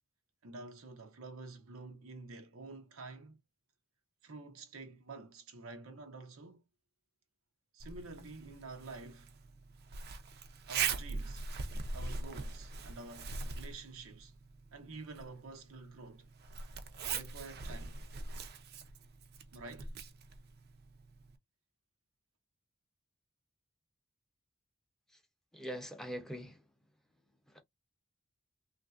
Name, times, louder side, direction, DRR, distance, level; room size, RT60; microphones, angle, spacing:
voice 1, 0.4-3.4 4.2-6.6 7.7-9.3 10.7-11.4 11.9-14.3 14.7-16.3 17.0-18.0 19.5-19.9, right 3 dB, 85° right, 0.7 m, -49 dB
Zipper (clothing), 7.8-21.4, right 5 dB, 50° right, 0.5 m, -42 dB
voice 2, 25.5-26.6 27.5-27.6, equal, ahead, 0.6 m, -42 dB
3.2 x 2.5 x 2.4 m
head